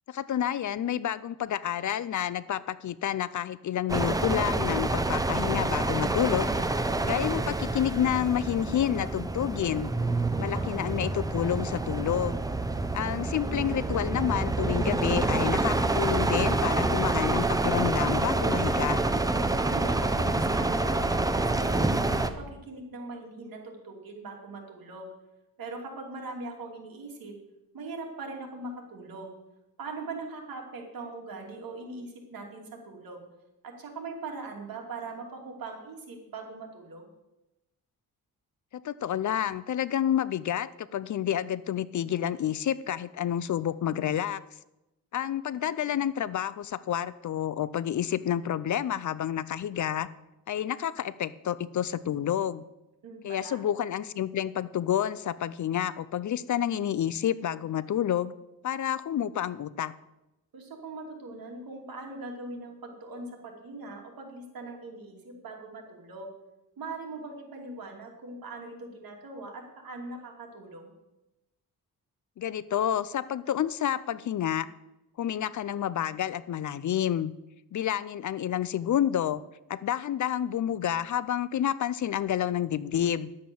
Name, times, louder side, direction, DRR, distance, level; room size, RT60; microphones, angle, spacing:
voice 1, 0.1-6.5 7.0-9.9 10.4-12.4 12.9-19.0 38.7-44.4 45.1-50.1 50.5-52.6 53.2-58.3 58.6-59.9 72.4-74.7 75.2-77.3 77.7-79.4 79.7-83.3, left 10 dB, 55° left, 17 dB, 0.5 m, -29 dB
sound 1, 3.9-22.3, right 2 dB, 10° right, 0.6 m, -27 dB
voice 2, 10.4-10.8 19.6-25.1 25.6-27.4 27.7-29.4 29.8-33.2 33.6-37.1 53.0-53.6 60.5-66.3 66.8-70.9, right 3 dB, 70° right, 1 dB, 2.8 m, -41 dB
10.5 x 7.7 x 7.0 m, 0.94 s
cardioid pair, 110°, 36 cm